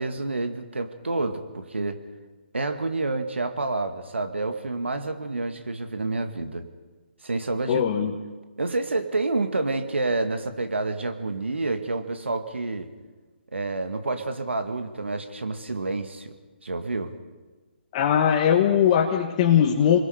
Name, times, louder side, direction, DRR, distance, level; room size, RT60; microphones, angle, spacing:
voice 1, 0.0-2.0 2.5-6.7 7.2-7.8 8.6-12.9 13.5-16.4 16.6-17.1, right 3 dB, 85° right, 7 dB, 2.0 m, -28 dB
voice 2, 7.7-8.2 17.9-20.0, left 9 dB, 35° left, 0 dB, 1.7 m, -20 dB
29.0 x 21.5 x 5.1 m, 1.3 s
figure-of-eight pair, 145°, 6 cm